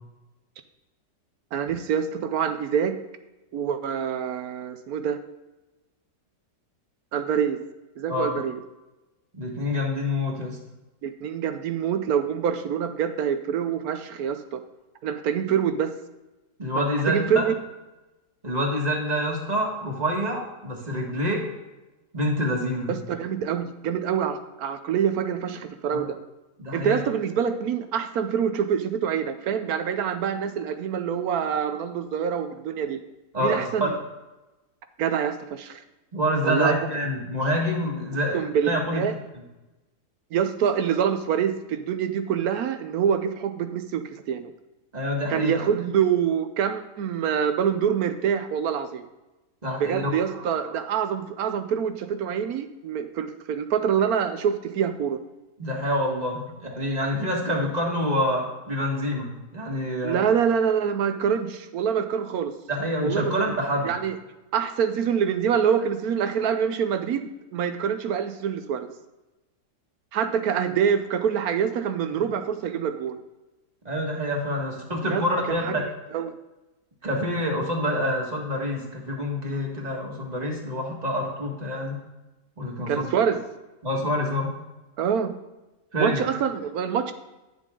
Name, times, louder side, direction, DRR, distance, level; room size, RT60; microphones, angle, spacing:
voice 1, 1.5-3.0 3.5-5.2 7.1-7.6 8.0-8.6 11.0-14.6 15.0-15.9 16.7-17.5 22.9-26.2 26.7-33.0 33.4-34.0 35.0-35.8 36.4-36.7 38.3-39.2 40.3-44.5 45.3-49.1 49.8-55.2 60.0-62.6 63.0-63.5 63.8-64.2 64.5-68.9 70.1-73.2 75.1-75.8 76.1-76.3 82.9-83.4 85.0-85.3 86.0-87.1, right 8 dB, 70° right, 9 dB, 1.0 m, -26 dB
voice 2, 8.1-8.4 9.4-10.6 16.6-17.4 18.4-21.5 22.1-22.9 25.9-26.0 26.6-27.0 33.3-33.9 36.1-38.4 38.7-39.0 44.9-45.7 49.6-50.1 55.6-60.3 62.7-63.9 72.1-72.2 73.8-75.8 77.0-82.0 82.6-83.1 83.8-84.6 85.9-86.2, equal, 25° right, 0 dB, 1.7 m, -27 dB
10.0 x 7.2 x 3.7 m, 1.0 s
omnidirectional pair, 1.8 m